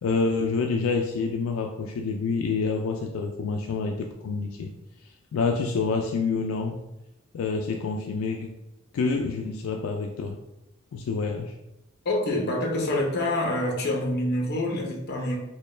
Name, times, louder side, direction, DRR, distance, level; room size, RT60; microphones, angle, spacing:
voice 1, 0.0-4.7 5.3-6.8 7.3-8.5 8.9-10.4 10.9-11.5, left 4 dB, 80° left, 2 dB, 0.3 m, -27 dB
voice 2, 12.0-15.4, left 1 dB, 50° left, 1 dB, 0.7 m, -26 dB
4.2 x 2.2 x 3.2 m, 0.91 s
head